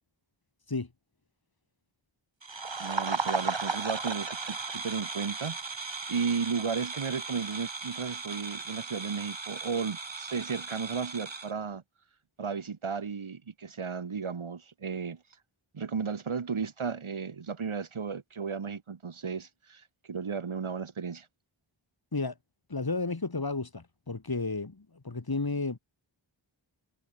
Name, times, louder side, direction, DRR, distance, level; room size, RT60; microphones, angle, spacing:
sound 1, 2.4-11.5, right 4 dB, 65° right, 5.0 m, -36 dB
voice 1, 2.8-11.8 12.4-15.2 15.7-21.3, right 5 dB, 85° right, 2.1 m, -34 dB
voice 2, 22.7-25.8, left 3 dB, 50° left, 4.6 m, -32 dB
wide cardioid pair, 70°, 48 cm